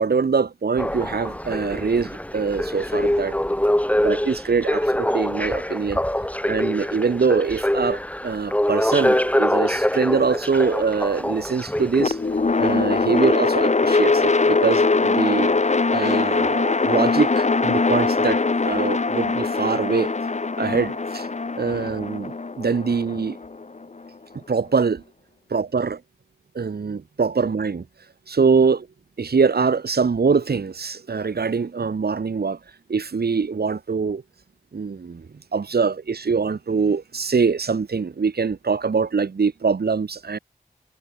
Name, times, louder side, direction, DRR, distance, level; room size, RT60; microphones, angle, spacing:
voice 1, 0.0-3.4 4.0-6.0 6.5-12.2 12.6-15.5 15.9-20.1 20.6-21.3 21.6-23.4 24.3-25.0 25.5-26.0 26.5-27.8 28.3-28.9 29.2-32.6 32.9-34.2 34.7-35.3 35.5-40.4, right 5 dB, 85° right, 2.1 m, -23 dB
sound 1, 0.8-12.4 13.0-13.1, left 1 dB, 10° left, 3.0 m, -24 dB
sound 2, 12.0-24.1, left 3 dB, 45° left, 1.4 m, -22 dB
wide cardioid pair, 90°, 16 cm